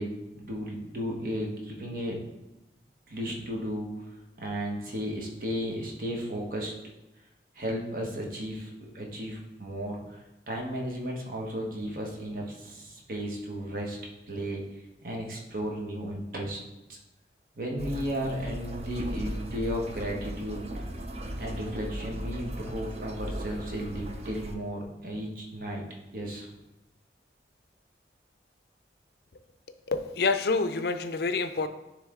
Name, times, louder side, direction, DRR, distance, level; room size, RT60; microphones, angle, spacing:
voice 1, 0.0-2.2 3.1-3.9 4.4-6.7 7.5-10.2 10.5-14.0 14.3-14.6 15.0-16.6 16.9-17.0 17.6-20.6 21.4-25.8 26.1-26.5, equal, 50° right, -1 dB, 1.2 m, -34 dB
sound 1, 17.8-24.6, right 1 dB, 35° right, 0.5 m, -37 dB
voice 2, 29.9-31.7, left 4 dB, 65° left, 10 dB, 0.4 m, -27 dB
9.6 x 3.3 x 3.7 m, 0.94 s
head